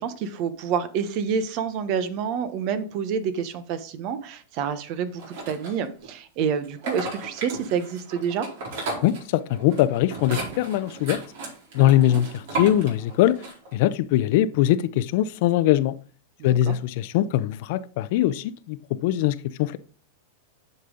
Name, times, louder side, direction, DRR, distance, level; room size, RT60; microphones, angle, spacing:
voice 1, 0.0-8.5 11.9-12.2 16.4-16.8, right 7 dB, 50° right, 1.1 m, -28 dB
sound 1, 5.2-6.1 6.6-13.7, right 2 dB, 65° right, 4.4 m, -35 dB
voice 2, 9.0-11.2 11.7-13.4 13.7-15.9 16.4-19.8, left 13 dB, 60° left, 0.6 m, -22 dB
9.6 x 5.4 x 3.9 m
hypercardioid pair, 120°, 0 cm